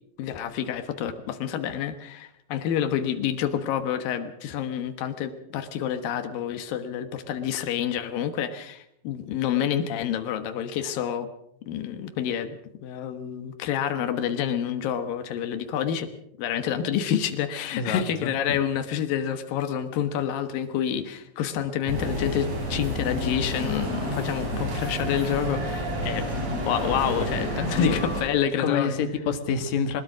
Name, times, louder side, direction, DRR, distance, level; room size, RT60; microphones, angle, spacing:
voice 1, 0.2-11.3 11.7-16.1 16.4-26.3 26.5-29.0, left 9 dB, 85° left, 8 dB, 3.1 m, -28 dB
voice 2, 17.8-18.6 27.8-28.0 28.6-30.0, left 6 dB, 60° left, 7 dB, 3.0 m, -27 dB
sound 1, 21.9-28.2, equal, 50° right, 6.3 m, -29 dB
21.5 x 21.0 x 6.2 m, 0.75 s
omnidirectional pair, 3.9 m